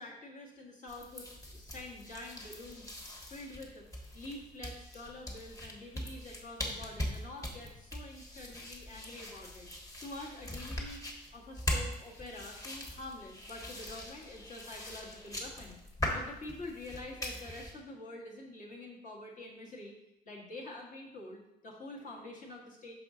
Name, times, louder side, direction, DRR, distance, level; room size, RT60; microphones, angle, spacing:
voice 1, 0.0-2.9 3.3-3.9 4.1-9.7 10.0-11.1 11.3-15.8 16.1-19.9 20.2-22.9, left 2 dB, 50° left, -2 dB, 1.6 m, -46 dB
sound 1, 0.9-17.7, left 1 dB, 20° left, 1.4 m, -41 dB
5.8 x 5.3 x 3.8 m, 0.88 s
cardioid pair, 110°, 17 cm